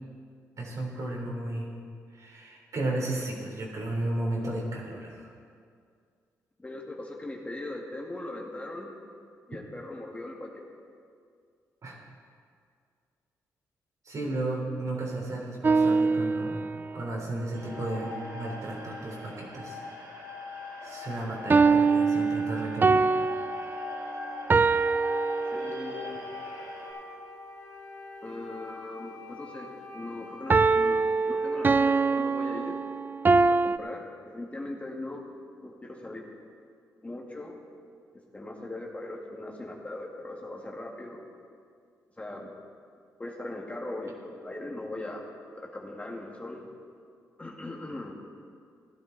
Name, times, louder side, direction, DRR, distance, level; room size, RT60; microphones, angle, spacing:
voice 1, 0.6-1.7 2.1-5.3 11.8-12.0 14.0-16.6 16.9-19.8 20.8-23.1, right 2 dB, 55° right, -3 dB, 3.7 m, -34 dB
voice 2, 6.6-9.0 9.5-10.7 25.5-26.3 28.2-32.8 33.6-35.2 35.6-36.3 37.0-37.6 38.1-41.2 42.2-42.5 43.2-45.3 45.5-46.6 47.4-48.2, left 2 dB, 20° left, -1 dB, 2.0 m, -39 dB
sound 1, 15.6-17.0 21.5-26.0 30.5-33.8, right 4 dB, 30° right, 0.4 m, -24 dB
sound 2, 17.5-26.9, left 3 dB, 90° right, 3.2 m, -41 dB
Wind instrument woodwind instrument, 24.9-32.7, left 2 dB, 60° left, 3.1 m, -47 dB
16.5 x 11.0 x 4.1 m, 2.2 s
cardioid pair, 65°, 7 cm